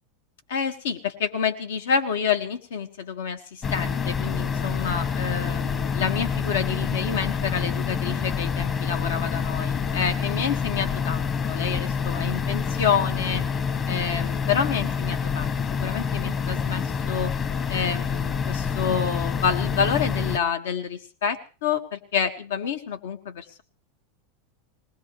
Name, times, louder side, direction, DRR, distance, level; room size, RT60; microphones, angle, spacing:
voice 1, 0.5-13.4 13.9-15.5 15.8-17.3 17.7-23.6, left 7 dB, 85° left, 7 dB, 1.8 m, -28 dB
sound 1, 3.6-20.4, left 6 dB, 30° left, 1.1 m, -27 dB
21.5 x 19.5 x 3.3 m, 0.35 s
supercardioid pair, 130°, 0 cm